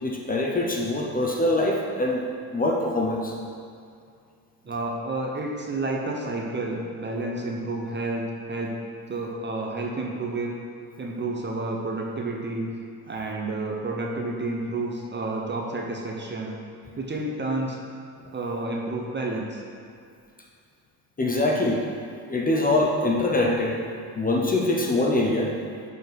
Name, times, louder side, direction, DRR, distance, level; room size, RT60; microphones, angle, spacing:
voice 1, 0.0-2.2 2.5-3.3 21.2-21.8 22.3-23.8 24.1-25.5, left 2 dB, 20° left, -1 dB, 0.7 m, -23 dB
voice 2, 4.6-8.8 9.1-10.6 11.0-12.7 13.1-16.5 17.0-17.8 18.3-19.6, right 2 dB, 25° right, 0 dB, 0.7 m, -30 dB
6.5 x 4.3 x 5.1 m, 2.4 s
cardioid pair, 120°, 42 cm